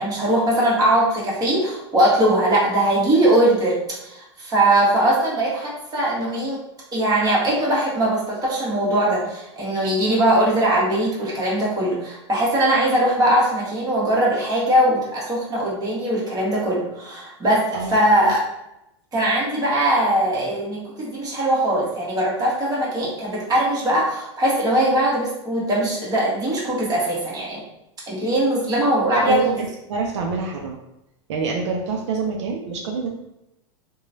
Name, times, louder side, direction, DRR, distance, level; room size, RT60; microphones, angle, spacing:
voice 1, 0.0-3.8 4.0-6.6 6.9-17.6 17.9-18.4 19.1-27.6 28.1-29.6, right 1 dB, 25° right, -5 dB, 1.2 m, -20 dB
voice 2, 29.3-30.8 31.3-33.1, right 4 dB, 75° right, 1 dB, 0.5 m, -26 dB
2.9 x 2.2 x 2.6 m, 0.86 s
hypercardioid pair, 115°, 15 cm